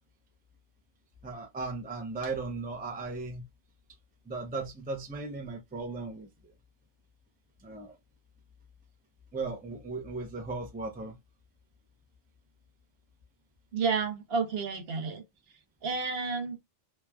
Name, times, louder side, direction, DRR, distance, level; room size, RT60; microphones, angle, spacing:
voice 1, 1.2-3.4 4.3-6.3 7.6-8.0 9.3-11.1, right 3 dB, 10° right, 0.4 m, -36 dB
voice 2, 13.7-15.2 15.8-16.6, right 5 dB, 65° right, 0.8 m, -30 dB
3.1 x 2.3 x 2.2 m
omnidirectional pair, 1.2 m